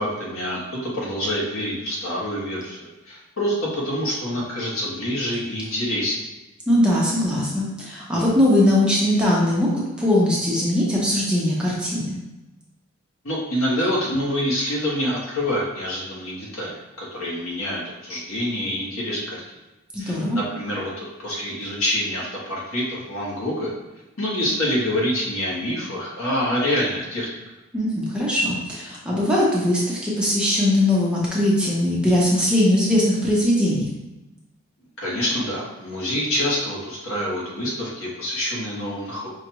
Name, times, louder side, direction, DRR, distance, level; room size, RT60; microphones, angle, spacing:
voice 1, 0.0-6.2 13.2-19.6 20.0-23.7 24.2-27.3 35.0-39.3, equal, 90° left, -5 dB, 1.3 m, -26 dB
voice 2, 6.7-9.7 10.0-12.2 19.9-20.4 27.7-33.9, left 1 dB, 5° right, -6 dB, 0.7 m, -20 dB
5.1 x 2.4 x 3.0 m, 1.0 s
head